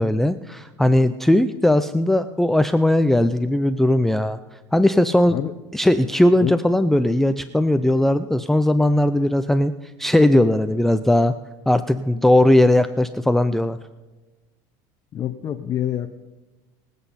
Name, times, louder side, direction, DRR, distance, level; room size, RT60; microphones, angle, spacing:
voice 1, 0.0-4.4 4.7-5.4 5.7-9.7 10.0-11.3 11.7-13.8, left 1 dB, 5° left, 9 dB, 0.4 m, -18 dB
voice 2, 15.1-16.2, left 11 dB, 35° left, 6 dB, 0.8 m, -26 dB
24.0 x 8.1 x 4.2 m, 1.2 s
supercardioid pair, 125°, 11 cm